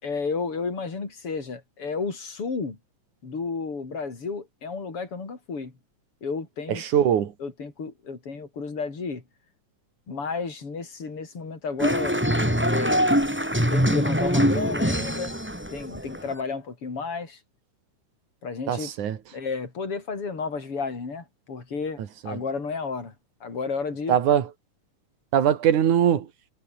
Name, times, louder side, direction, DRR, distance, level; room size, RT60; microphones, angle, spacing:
voice 1, 0.0-2.8 3.2-5.7 6.2-6.8 7.4-9.2 10.1-12.2 12.6-13.1 13.7-15.3 15.7-17.4 18.4-18.9 19.3-22.0 22.3-23.1 23.4-24.2, left 4 dB, 45° left, 5.9 m, -32 dB
voice 2, 6.8-7.3 18.7-19.2 22.2-22.4 24.1-24.4 25.3-26.3, right 9 dB, 75° right, 3.4 m, -21 dB
sound 1, 11.8-16.3, equal, 5° right, 6.9 m, -23 dB
omnidirectional pair, 3.5 m